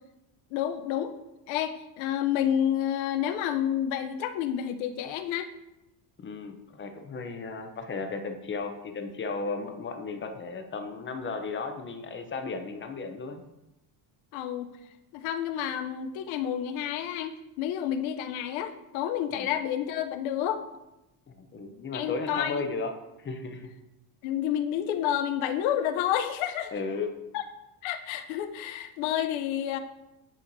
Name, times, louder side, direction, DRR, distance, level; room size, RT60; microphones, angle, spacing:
voice 1, 0.5-1.1 1.5-5.5 14.3-14.7 15.1-20.6 21.9-22.7 24.2-26.7 27.3-27.4 27.8-29.8, left 10 dB, 90° left, 9 dB, 0.7 m, -29 dB
voice 2, 6.2-13.4 19.3-19.5 21.3-22.9 23.2-23.7 26.7-27.1, left 4 dB, 25° left, 6 dB, 0.6 m, -35 dB
10.0 x 4.3 x 2.6 m, 0.95 s
cardioid pair, 130°, 46 cm